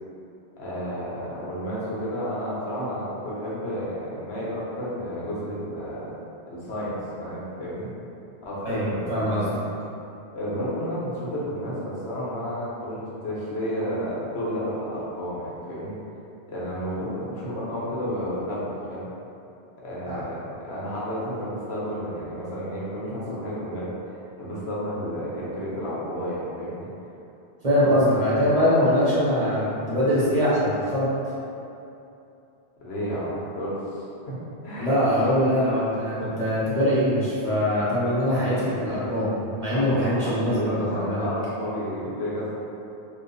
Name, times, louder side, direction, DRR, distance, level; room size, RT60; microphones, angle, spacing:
voice 1, 0.6-6.1 6.5-7.9 8.4-9.6 10.3-16.0 16.5-19.1 19.8-26.9 32.8-34.4 34.6-35.3 39.7-42.5, equal, 85° left, -7 dB, 1.1 m, -31 dB
voice 2, 8.6-9.5 20.1-20.2 27.6-31.1 34.8-39.3 39.6-41.3, equal, 40° right, -10 dB, 0.9 m, -22 dB
2.7 x 2.5 x 3.9 m, 2.8 s
omnidirectional pair, 1.1 m